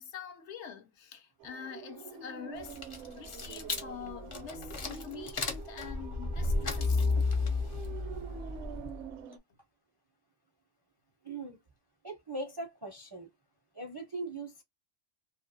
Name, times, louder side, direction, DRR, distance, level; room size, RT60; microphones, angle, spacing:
voice 1, 0.0-2.8 3.2-7.0, left 8 dB, 70° left, 0.8 m, -45 dB
sound 1, 1.4-9.4, right 7 dB, 70° right, 0.8 m, -46 dB
sound 2, 2.6-9.1, left 3 dB, 40° left, 0.4 m, -33 dB
voice 2, 11.2-11.6 12.0-13.3 13.7-14.6, right 2 dB, 30° right, 0.4 m, -40 dB
2.6 x 2.5 x 2.6 m
omnidirectional pair, 1.3 m